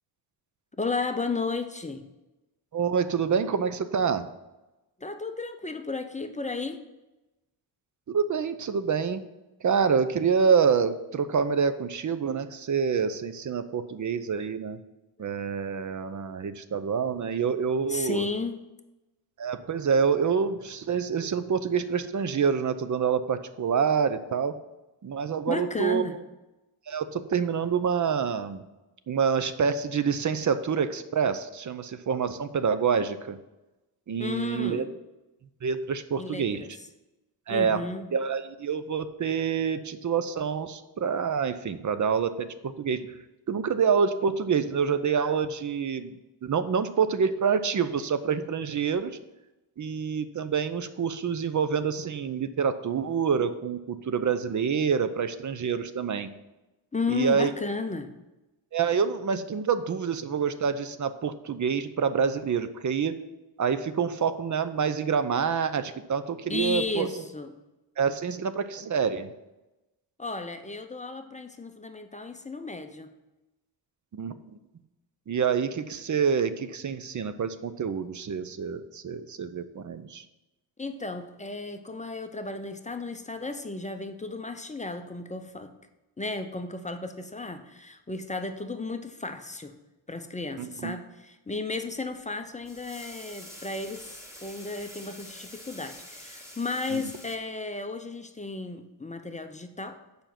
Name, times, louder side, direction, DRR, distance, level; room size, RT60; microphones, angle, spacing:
voice 1, 0.8-2.0 5.0-6.8 17.9-18.6 25.5-26.2 34.2-34.9 36.2-36.7 37.5-38.1 56.9-58.1 66.5-67.5 70.2-73.1 80.8-85.7 86.2-89.8 90.1-100.0, left 3 dB, 15° left, 7 dB, 0.6 m, -34 dB
voice 2, 2.7-4.3 8.1-9.2 9.6-14.8 15.2-18.3 19.4-24.5 25.0-26.0 26.9-28.6 29.1-33.4 34.1-34.9 35.6-36.6 37.5-37.8 38.1-43.1 43.5-46.2 46.4-49.2 49.8-56.3 57.1-57.5 58.7-63.1 63.6-67.3 68.0-69.3 74.1-74.6 75.3-80.2 90.6-90.9 96.9-97.0, right 6 dB, 45° right, 11 dB, 0.6 m, -27 dB
sound 1, 92.6-97.4, left 1 dB, 5° right, 1.9 m, -46 dB
7.0 x 5.2 x 5.9 m, 1.0 s
cardioid pair, 90°, 43 cm